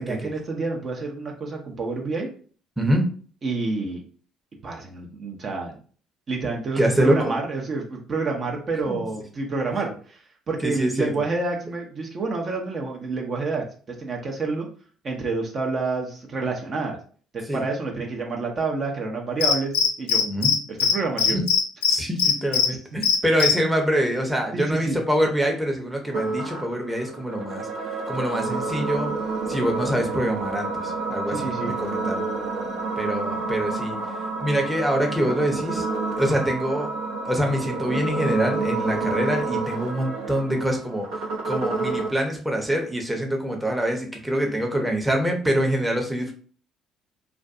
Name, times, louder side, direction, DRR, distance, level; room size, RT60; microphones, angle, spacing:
voice 1, 0.0-2.3 3.4-4.0 4.6-5.7 6.3-13.6 14.0-14.7 15.0-17.0 17.3-20.2 20.7-21.4 24.5-25.0 31.3-31.7, right 3 dB, 45° right, 1 dB, 0.6 m, -28 dB
voice 2, 6.8-7.3 8.9-9.0 10.6-11.1 17.5-17.6 20.2-20.5 21.3-21.4 21.9-27.7 28.1-29.2 29.5-32.2 33.0-34.0 34.4-35.9 36.2-36.9 37.2-46.3, equal, 10° right, 2 dB, 0.7 m, -25 dB
Cricket, 19.4-20.5 20.8-20.9 21.2-22.7 23.0-23.5, left 7 dB, 85° left, 0.3 m, -19 dB
sound 1, 26.1-42.1, right 3 dB, 80° right, 0.8 m, -29 dB
2.5 x 2.3 x 2.5 m, 0.43 s
hypercardioid pair, 60°, 0 cm